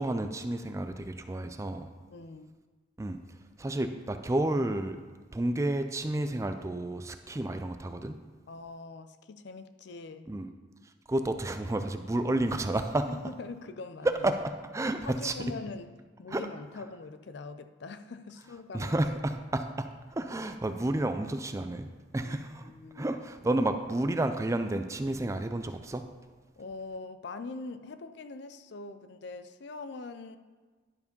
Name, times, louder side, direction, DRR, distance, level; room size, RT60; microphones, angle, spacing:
voice 1, 0.0-1.9 3.0-3.2 3.6-5.0 5.3-8.2 10.3-10.5 11.1-13.1 14.0-15.3 16.3-16.4 18.7-21.9 22.1-26.0, right 1 dB, 15° right, 8 dB, 0.3 m, -31 dB
voice 2, 2.1-2.5 7.3-7.4 8.5-10.3 13.1-14.2 15.0-15.9 16.2-19.0 22.2-22.4 22.6-23.2 26.6-30.4, left 3 dB, 60° left, 10 dB, 0.4 m, -43 dB
10.5 x 4.7 x 5.2 m, 1.4 s
head